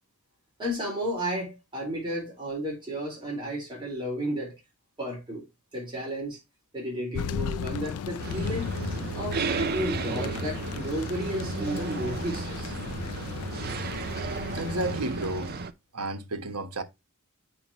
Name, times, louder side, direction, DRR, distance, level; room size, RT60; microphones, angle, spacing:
voice 1, 0.6-4.6 5.0-5.5 5.7-6.4 6.7-8.7 9.1-12.7, equal, 20° right, 4.5 m, -33 dB
Thunder, 7.1-15.7, left 7 dB, 85° left, 0.4 m, -36 dB
sound 1, 8.2-15.7, right 4 dB, 45° right, 0.5 m, -34 dB
voice 2, 14.1-15.6 15.9-16.8, right 2 dB, 85° right, 1.2 m, -32 dB
8.6 x 5.3 x 3.0 m
head